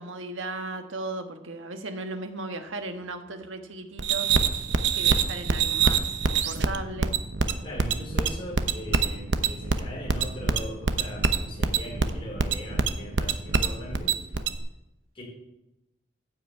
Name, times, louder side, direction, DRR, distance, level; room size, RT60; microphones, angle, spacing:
voice 1, 0.0-4.3 4.9-7.1, right 2 dB, 80° right, 6 dB, 1.5 m, -36 dB
sound 1, 4.0-14.6, right 5 dB, 60° right, 0.9 m, -25 dB
voice 2, 7.6-14.1 15.1-15.2, equal, 25° left, -2 dB, 4.8 m, -39 dB
14.5 x 6.1 x 8.4 m, 0.93 s
head